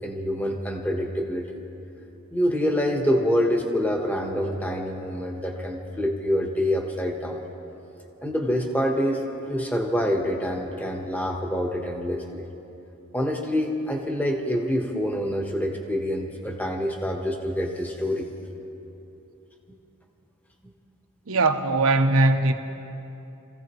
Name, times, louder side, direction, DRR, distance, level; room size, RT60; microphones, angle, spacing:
voice 1, 0.0-1.6 2.3-7.4 8.2-12.5 13.1-18.4, equal, 5° left, 1.2 m, -26 dB
voice 2, 21.3-22.5, right 2 dB, 70° right, 1.0 m, -20 dB
27.0 x 15.5 x 3.1 m
head